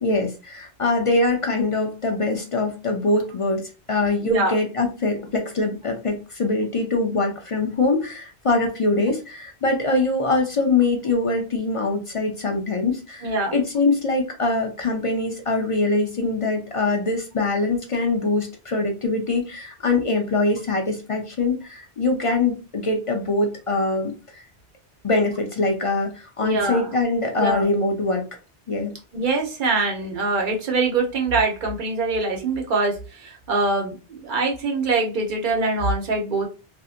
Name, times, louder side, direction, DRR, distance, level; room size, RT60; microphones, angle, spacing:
voice 1, 0.0-24.4 25.0-28.3 28.7-28.9, left 3 dB, 50° left, 2 dB, 0.4 m, -23 dB
voice 2, 4.2-4.6 13.2-13.5 26.4-26.9 27.4-27.7 29.1-36.5, right 3 dB, 50° right, 1 dB, 0.9 m, -23 dB
2.7 x 2.5 x 2.4 m, 0.32 s
omnidirectional pair, 1.1 m